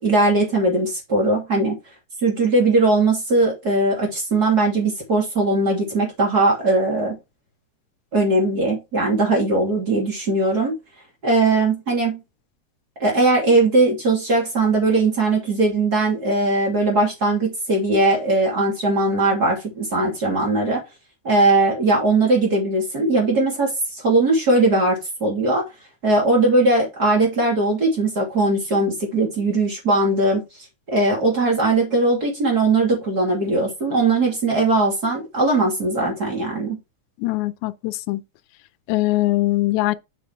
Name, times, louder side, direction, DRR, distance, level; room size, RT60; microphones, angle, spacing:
voice 1, 0.0-1.8 2.2-7.2 8.1-10.7 11.2-12.2 13.0-20.8 21.2-25.6 26.0-30.4 30.9-36.8, right 2 dB, 35° right, 3.4 m, -19 dB
voice 2, 37.2-38.2 38.9-40.0, left 18 dB, 85° left, 2.0 m, -22 dB
7.5 x 5.8 x 3.5 m
omnidirectional pair, 3.3 m